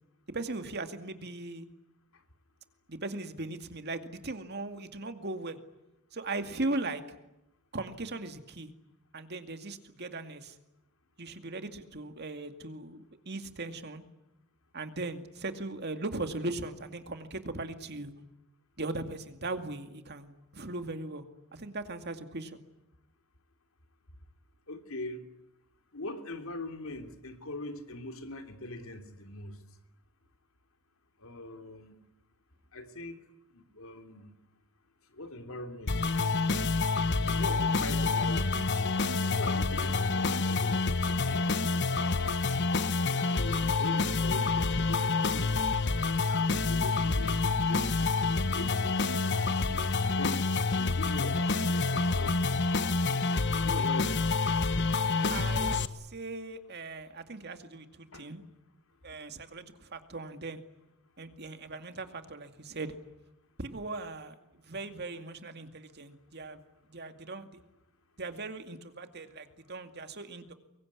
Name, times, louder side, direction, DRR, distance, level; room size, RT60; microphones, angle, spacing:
voice 1, 0.3-1.7 2.9-5.6 6.1-7.0 7.7-8.7 9.1-10.5 11.2-14.0 14.7-18.1 18.8-21.2 21.5-22.6 55.3-58.4 59.0-60.6 61.2-63.0 63.6-66.6 66.9-67.6 68.2-70.5, right 2 dB, 50° right, 2.3 m, -39 dB
voice 2, 24.7-25.2 25.9-29.6 31.2-32.0 32.7-33.2 33.5-34.3 35.1-36.4 37.3-38.7 39.2-42.3 43.3-45.5 46.0-49.5 50.0-50.4 50.8-52.6 53.6-54.3 58.1-58.3, left 2 dB, 75° left, 3.0 m, -42 dB
sound 1, 35.9-55.9, left 3 dB, 55° left, 1.1 m, -28 dB
24.5 x 23.0 x 9.8 m
head